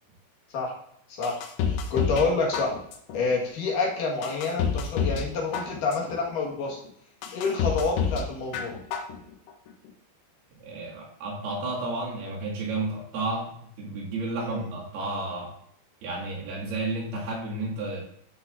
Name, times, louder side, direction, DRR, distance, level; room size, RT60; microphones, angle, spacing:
voice 1, 1.1-2.8 3.1-6.8 7.3-8.8 14.4-14.7, left 4 dB, 60° left, -2 dB, 2.6 m, -28 dB
sound 1, 1.2-2.3 2.5-3.2 3.7-3.8 4.2-5.3 5.5-6.2 6.7-6.8 7.2-8.2 8.5-9.2 9.5-9.6, left 6 dB, 80° left, 3.2 m, -28 dB
voice 2, 10.6-15.5 16.0-18.0, right 2 dB, 60° right, -5 dB, 3.9 m, -32 dB
13.5 x 6.1 x 2.6 m, 0.68 s
omnidirectional pair, 5.5 m